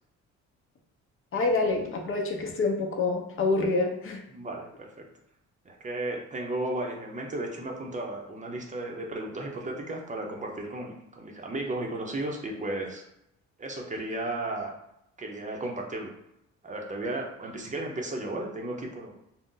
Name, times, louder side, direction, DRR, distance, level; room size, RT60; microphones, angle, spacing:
voice 1, 1.3-4.2, left 3 dB, 45° left, 2 dB, 0.7 m, -27 dB
voice 2, 4.3-5.0 5.7-13.1 13.6-14.7 15.2-16.1 16.6-19.1, right 2 dB, 25° right, 1 dB, 0.6 m, -34 dB
2.6 x 2.1 x 3.7 m, 0.79 s
cardioid pair, 90°, 30 cm